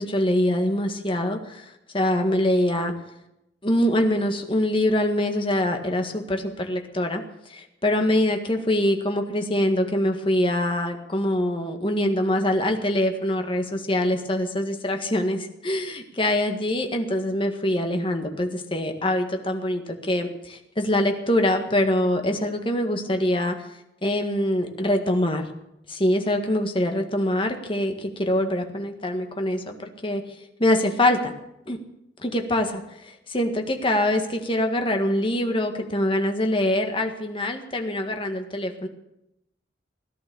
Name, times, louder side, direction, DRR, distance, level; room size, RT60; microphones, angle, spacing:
voice 1, 0.0-2.9 3.6-7.2 7.5-23.6 24.0-25.5 25.9-30.2 30.6-31.3 31.7-31.8 32.2-38.9, left 1 dB, 30° left, 4 dB, 1.8 m, -24 dB
17.5 x 11.5 x 7.0 m, 0.84 s
head